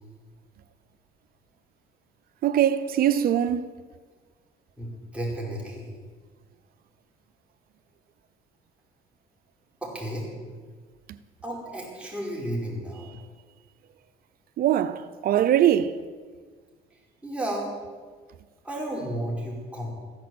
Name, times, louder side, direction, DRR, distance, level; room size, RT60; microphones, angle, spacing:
voice 1, 2.4-3.7 14.6-16.0, right 10 dB, 60° right, 0.8 m, -22 dB
voice 2, 4.8-5.9 9.8-10.3 11.4-13.1 17.2-17.7 18.6-19.9, right 1 dB, 5° right, 4.8 m, -32 dB
14.5 x 11.0 x 7.9 m
cardioid pair, 110°, 17 cm